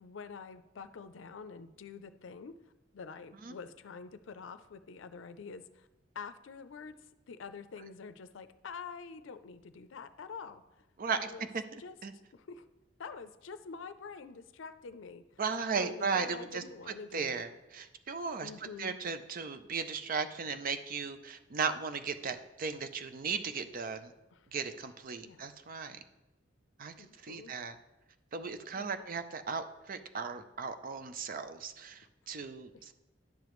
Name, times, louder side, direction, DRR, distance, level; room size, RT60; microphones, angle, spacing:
voice 1, 0.0-2.6 2.9-5.9 6.1-10.9 11.1-11.5 11.8-12.0 12.3-12.7 13.0-15.2 15.8-17.4 18.4-19.0 24.3-24.5 25.2-25.4 27.0-27.5 28.7-29.1, left 5 dB, 75° left, 11 dB, 0.5 m, -46 dB
voice 2, 11.0-11.6 12.0-12.1 15.4-18.5 18.8-24.1 24.5-26.0 26.8-27.7 28.3-32.9, right 5 dB, 45° right, 10 dB, 0.5 m, -36 dB
10.5 x 6.8 x 3.1 m, 1.0 s
head